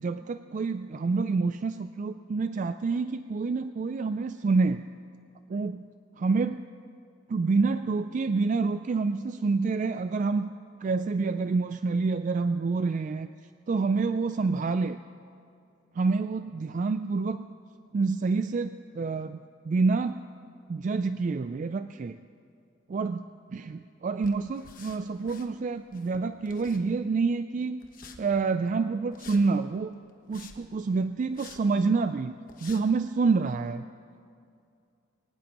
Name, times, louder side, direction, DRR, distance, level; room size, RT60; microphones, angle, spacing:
voice 1, 0.0-4.8 5.5-5.8 6.2-6.6 7.3-10.5 10.8-13.3 13.7-15.0 16.0-17.5 17.9-19.4 19.7-20.2 20.7-22.2 22.9-23.2 23.5-27.8 28.2-29.9 30.3-32.3 32.6-33.8, right 4 dB, 40° right, 11 dB, 0.3 m, -27 dB
sound 1, 24.2-25.5 25.8-27.2 27.8-28.2 29.1-29.4 30.1-30.7 31.3-31.6 32.1-32.2 32.5-32.8, left 5 dB, 45° left, 1.1 m, -49 dB
23.0 x 19.0 x 3.0 m, 2.4 s
head